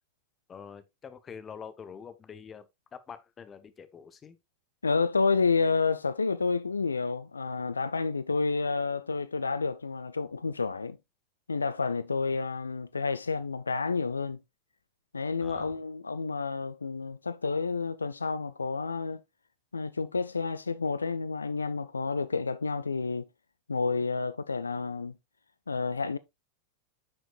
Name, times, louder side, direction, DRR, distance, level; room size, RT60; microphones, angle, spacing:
voice 1, 0.5-2.7 2.9-4.4 15.4-15.8, left 6 dB, 20° left, 0.9 m, -45 dB
voice 2, 4.8-11.0 11.5-14.4 15.1-19.2 19.7-23.3 23.7-25.1 25.7-26.2, left 4 dB, 75° left, 0.3 m, -30 dB
9.4 x 6.3 x 2.4 m
figure-of-eight pair, 90°, 0 cm